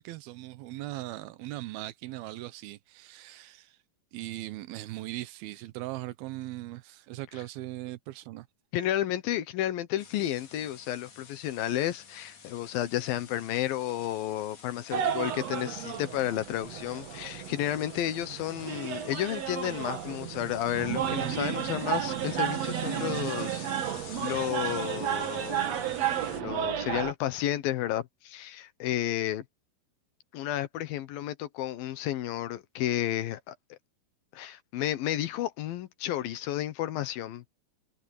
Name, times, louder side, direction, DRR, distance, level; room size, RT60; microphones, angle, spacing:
voice 1, 0.0-3.8 4.1-8.5, right 17 dB, 80° right, 2.8 m, -39 dB
voice 2, 8.7-23.7 24.2-25.9 26.3-29.4 30.3-33.5 34.3-37.5, left 12 dB, 75° left, 2.9 m, -32 dB
sound 1, 10.0-26.4, left 6 dB, 55° left, 5.1 m, -50 dB
sound 2, 14.9-27.1, right 10 dB, 60° right, 2.0 m, -32 dB
omnidirectional pair, 4.4 m